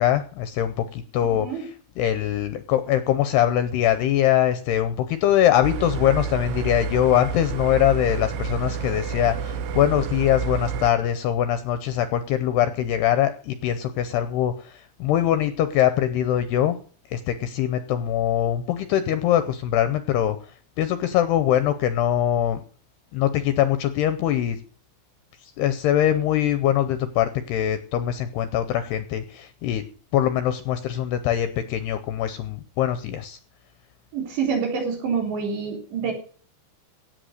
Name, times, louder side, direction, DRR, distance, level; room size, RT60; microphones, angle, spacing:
voice 1, 0.0-16.8 17.1-20.4 20.8-22.6 23.1-24.6 25.4-29.8 30.1-33.4, left 11 dB, 80° left, 11 dB, 2.5 m, -22 dB
voice 2, 1.2-1.6 34.1-36.1, right 6 dB, 65° right, 2 dB, 5.6 m, -27 dB
sound 1, 5.6-10.9, right 6 dB, 90° right, 2.2 m, -29 dB
16.5 x 7.6 x 6.6 m, 0.42 s
omnidirectional pair, 5.5 m